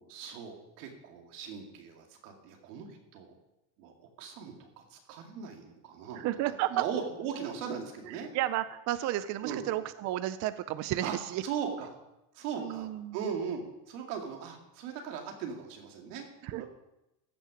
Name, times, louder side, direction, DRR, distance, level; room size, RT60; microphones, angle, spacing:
voice 1, 0.0-3.3 3.8-8.3 9.4-9.6 11.0-11.2 11.4-12.0 12.3-16.3 16.6-16.7, right 7 dB, 85° right, 2 dB, 2.3 m, -39 dB
voice 2, 6.2-6.8 8.1-11.4 12.6-13.2 16.4-16.6, right 14 dB, 40° right, 13 dB, 0.5 m, -32 dB
15.0 x 6.3 x 5.0 m, 0.92 s
cardioid pair, 140°, 45 cm